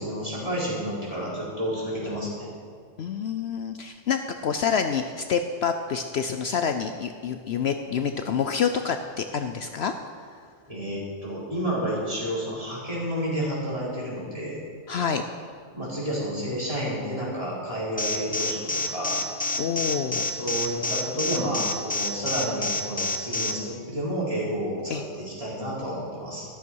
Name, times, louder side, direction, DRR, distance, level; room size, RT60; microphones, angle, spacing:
voice 1, 0.0-2.5 10.7-14.6 15.7-19.2 20.3-26.5, equal, 30° right, -8 dB, 4.7 m, -30 dB
voice 2, 3.0-9.9 14.9-15.2 19.6-20.3 24.9-25.0, left 7 dB, 65° left, 7 dB, 0.8 m, -27 dB
Alarm, 18.0-23.5, left 3 dB, 10° left, 0.8 m, -27 dB
14.0 x 13.5 x 4.7 m, 2.1 s
omnidirectional pair, 1.3 m